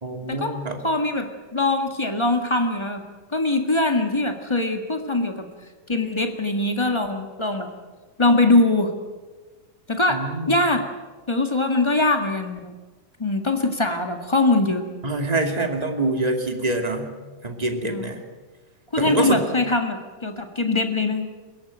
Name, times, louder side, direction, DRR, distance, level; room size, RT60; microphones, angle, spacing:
voice 1, 0.0-0.8 10.1-10.6 15.0-17.1 17.4-18.2 19.0-19.5, right 2 dB, 15° right, 3 dB, 1.8 m, -25 dB
voice 2, 0.8-5.4 5.9-7.7 8.2-8.9 9.9-10.8 11.3-12.7 13.2-14.8 17.8-18.1 18.9-21.3, left 2 dB, 25° left, 5 dB, 0.6 m, -22 dB
22.5 x 18.5 x 8.9 m, 1.3 s
omnidirectional pair, 3.8 m